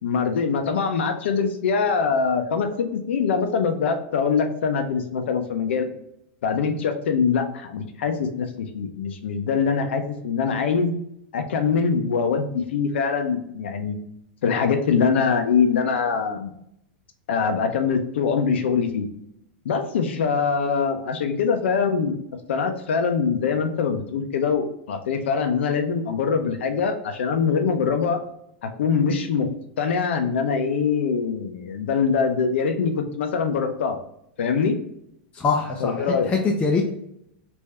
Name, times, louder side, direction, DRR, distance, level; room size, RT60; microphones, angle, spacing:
voice 1, 0.0-5.9 6.4-10.9 11.3-14.0 14.4-16.5 17.3-19.1 19.6-22.2 22.5-28.2 28.6-29.5 29.8-34.0 34.4-34.8 35.8-36.3, left 5 dB, 80° left, 7 dB, 0.6 m, -23 dB
voice 2, 35.3-36.8, left 4 dB, 20° left, -1 dB, 0.6 m, -23 dB
3.4 x 2.6 x 3.2 m, 0.76 s
hypercardioid pair, 125°, 6 cm